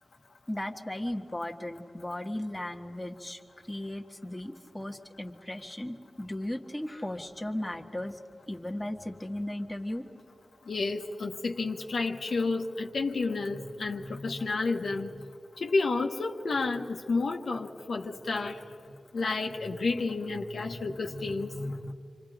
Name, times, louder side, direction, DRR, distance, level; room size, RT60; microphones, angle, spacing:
voice 1, 0.5-3.4 3.7-8.2 8.5-10.0, left 1 dB, 15° left, 2 dB, 1.6 m, -36 dB
voice 2, 10.7-15.1 15.6-18.6 19.1-21.9, left 3 dB, 75° left, 2 dB, 1.4 m, -31 dB
29.5 x 25.5 x 5.1 m, 2.5 s
wide cardioid pair, 75°, 0 cm